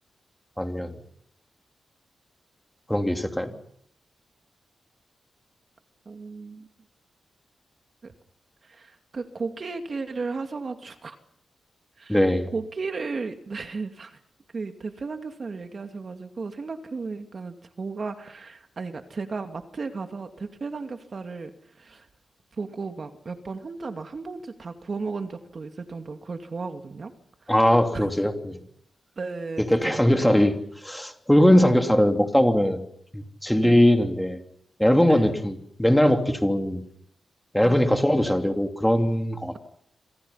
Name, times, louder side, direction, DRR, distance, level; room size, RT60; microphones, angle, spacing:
voice 1, 0.6-1.0 2.9-3.5 12.1-12.5 27.5-28.6 29.6-30.5 30.8-32.8 33.1-34.4 34.8-36.8 37.5-39.6, equal, 5° left, 5 dB, 3.2 m, -20 dB
voice 2, 6.1-6.7 8.0-8.1 8.6-11.2 12.0-12.2 12.5-14.2 14.5-22.1 22.6-27.1 27.4-27.6 27.9-28.1 29.2-30.4 33.6-33.9 35.1-35.4 37.6-37.8, right 4 dB, 45° right, 6 dB, 2.4 m, -35 dB
28.0 x 26.0 x 5.8 m, 0.72 s
wide cardioid pair, 100°, 0 cm